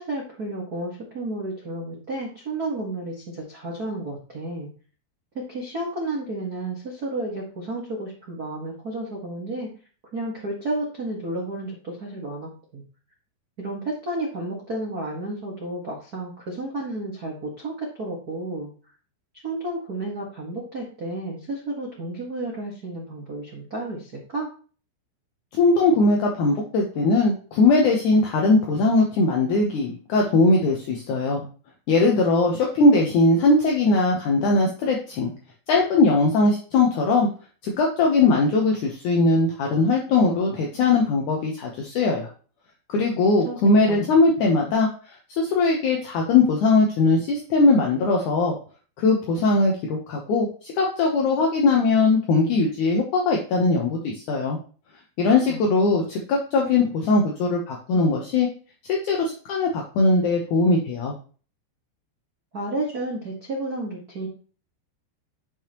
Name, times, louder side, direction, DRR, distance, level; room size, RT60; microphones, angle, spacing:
voice 1, 0.0-4.7 5.3-9.7 10.1-12.8 13.6-18.7 19.4-24.5 43.3-43.6 43.8-44.2 55.5-56.1 62.5-64.3, right 2 dB, 75° right, -3 dB, 0.8 m, -32 dB
voice 2, 25.6-31.4 31.9-35.3 35.7-37.3 37.6-42.3 42.9-44.9 45.3-48.6 49.0-54.6 55.2-58.5 58.9-61.1, left 3 dB, 75° left, 0 dB, 1.8 m, -20 dB
10.5 x 5.4 x 3.0 m, 0.38 s
omnidirectional pair, 5.0 m